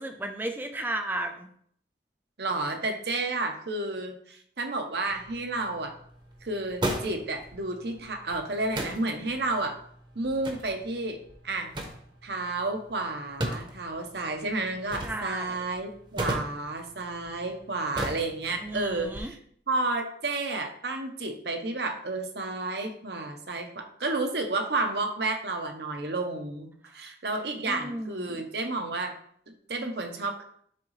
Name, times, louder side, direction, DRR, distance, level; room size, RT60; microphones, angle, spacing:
voice 1, 0.0-1.5 15.0-15.6 18.6-19.3 27.7-28.4, right 1 dB, 10° right, 5 dB, 0.5 m, -34 dB
voice 2, 2.4-6.0 6.4-9.8 10.1-11.2 11.4-11.7 12.2-19.4 19.7-26.7 26.9-29.1 29.5-30.4, right 2 dB, 75° right, 4 dB, 1.0 m, -31 dB
sound 1, 5.1-19.2, right 1 dB, 25° right, 0.9 m, -38 dB
10.5 x 3.7 x 3.2 m, 0.63 s
head